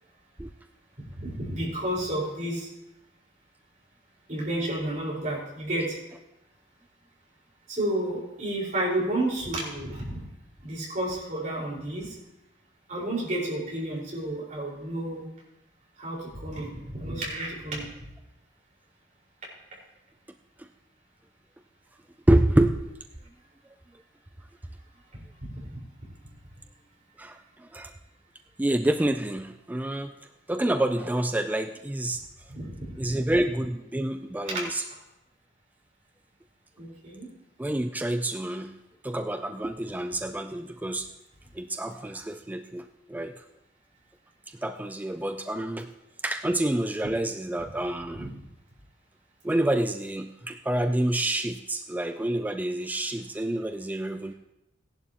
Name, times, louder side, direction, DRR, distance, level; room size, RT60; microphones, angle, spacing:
voice 1, 1.2-2.7 4.3-6.0 7.7-10.2 10.6-12.1 12.9-15.2 16.0-17.9 25.7-25.8 32.5-33.1 34.4-34.6 36.8-37.3 48.1-48.3, right 1 dB, 45° right, -5 dB, 4.7 m, -31 dB
voice 2, 22.3-22.8 27.2-27.9 28.6-30.1 30.5-32.2 33.0-34.8 37.6-38.7 39.0-41.1 41.5-43.4 44.5-45.9 46.2-48.3 49.4-54.3, right 1 dB, 10° right, 7 dB, 0.3 m, -28 dB
16.5 x 11.0 x 2.9 m, 0.90 s
head